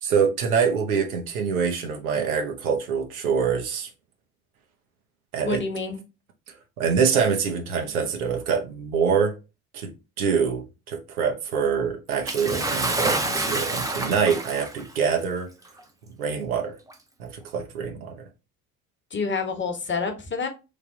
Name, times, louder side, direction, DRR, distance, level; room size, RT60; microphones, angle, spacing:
voice 1, 0.0-3.9 5.3-5.6 6.8-9.3 9.7-9.9 10.2-15.5 16.2-16.8 17.2-18.2, right 6 dB, 85° right, 0.7 m, -25 dB
voice 2, 5.5-6.0 19.1-20.5, left 4 dB, 25° left, 1.0 m, -28 dB
Bathtub (filling or washing) / Splash splatter, 12.3-14.9 15.8-15.9 16.9-17.0, right 2 dB, 10° right, 0.5 m, -27 dB
3.3 x 2.2 x 3.6 m
hypercardioid pair, 55°, 42 cm